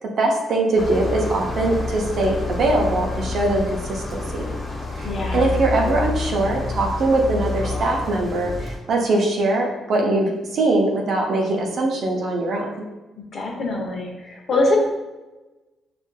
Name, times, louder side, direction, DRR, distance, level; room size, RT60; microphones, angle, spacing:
voice 1, 0.0-4.4 5.0-12.7, right 2 dB, 65° right, 0 dB, 0.6 m, -22 dB
sound 1, 0.8-8.8, left 3 dB, 30° left, 1.2 m, -28 dB
voice 2, 5.0-5.5 13.3-14.8, left 2 dB, 55° left, -1 dB, 0.8 m, -24 dB
4.7 x 2.5 x 2.2 m, 1.1 s
supercardioid pair, 60°, 0 cm